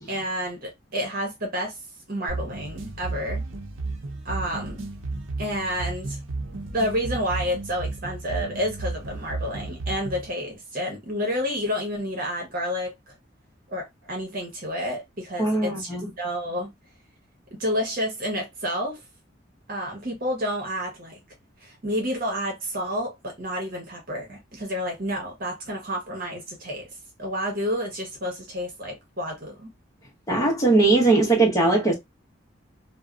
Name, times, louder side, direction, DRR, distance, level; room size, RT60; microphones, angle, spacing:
voice 1, 0.1-1.8 2.1-3.4 4.2-4.9 5.4-6.2 6.7-13.1 13.7-15.9 16.2-16.7 17.6-19.0 19.7-21.2 21.6-26.9 27.2-29.7, equal, 45° right, 1.0 m, -30 dB
sound 1, 2.3-10.3, right 3 dB, 80° right, 0.6 m, -33 dB
voice 2, 15.4-16.1 30.3-31.9, right 2 dB, 20° left, 0.8 m, -20 dB
2.7 x 2.1 x 2.4 m
head